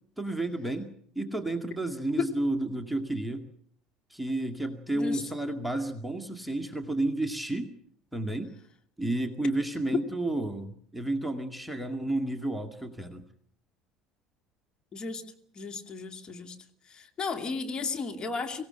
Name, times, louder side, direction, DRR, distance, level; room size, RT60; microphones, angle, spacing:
voice 1, 0.2-0.9 1.2-3.5 4.1-7.7 8.1-8.5 9.0-13.2, right 1 dB, ahead, 5 dB, 2.1 m, -31 dB
voice 2, 14.9-15.2 15.5-16.6 16.9-18.6, left 4 dB, 30° left, 5 dB, 2.6 m, -34 dB
24.5 x 17.0 x 7.8 m, 0.62 s
figure-of-eight pair, 65°, 3 cm